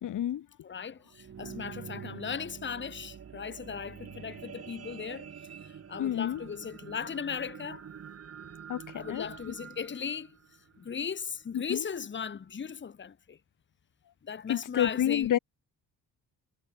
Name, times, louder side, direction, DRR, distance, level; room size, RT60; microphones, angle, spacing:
voice 1, 0.0-0.5 6.0-6.4 8.7-9.5 11.5-11.9 14.5-15.4, left 11 dB, 60° left, 2.8 m, -30 dB
voice 2, 0.6-5.3 5.6-7.9 8.9-10.4 10.8-13.4 14.2-15.3, left 6 dB, 35° left, 2.5 m, -37 dB
sound 1, 0.9-11.4 12.0-12.1, right 8 dB, 45° right, 5.1 m, -46 dB
cardioid pair, 155°, 35 cm